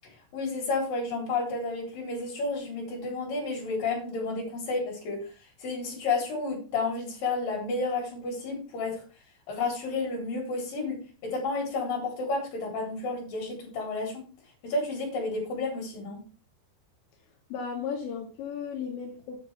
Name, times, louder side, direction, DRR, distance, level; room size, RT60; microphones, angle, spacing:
voice 1, 0.3-5.2 5.6-9.0 9.5-14.3 14.6-16.2, left 3 dB, 55° left, -1 dB, 5.6 m, -31 dB
voice 2, 17.5-19.4, left 6 dB, 85° left, 0 dB, 4.0 m, -35 dB
9.9 x 6.9 x 5.1 m, 0.36 s
omnidirectional pair, 5.0 m